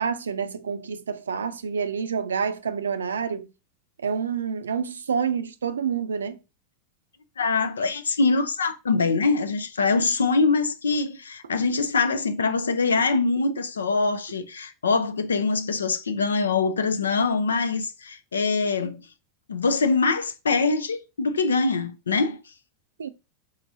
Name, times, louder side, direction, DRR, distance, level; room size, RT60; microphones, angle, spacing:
voice 1, 0.0-3.5 4.0-6.4 23.0-23.1, right 6 dB, 85° right, 0.4 m, -28 dB
voice 2, 7.4-19.0 19.5-22.4, left 4 dB, 90° left, 0.5 m, -23 dB
4.7 x 3.6 x 2.7 m
hypercardioid pair, 95°, 0 cm